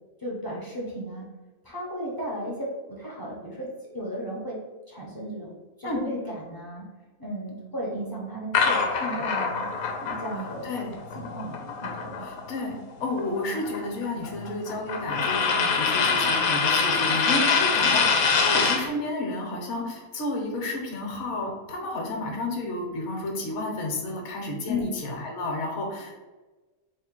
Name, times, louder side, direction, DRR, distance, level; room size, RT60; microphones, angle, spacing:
voice 1, 0.2-1.3 1.6-3.7 3.9-4.6 4.9-6.9 7.2-9.7 10.0-10.7 11.1-12.2 24.7-24.9, equal, 30° left, -5 dB, 0.4 m, -35 dB
sound 1, 8.5-12.6 12.9-18.9, left 5 dB, 90° left, 1.1 m, -25 dB
voice 2, 10.6-10.9 12.2-12.7 13.0-26.1, left 2 dB, 60° left, 1 dB, 1.0 m, -31 dB
3.4 x 2.1 x 4.3 m, 1.2 s
omnidirectional pair, 1.5 m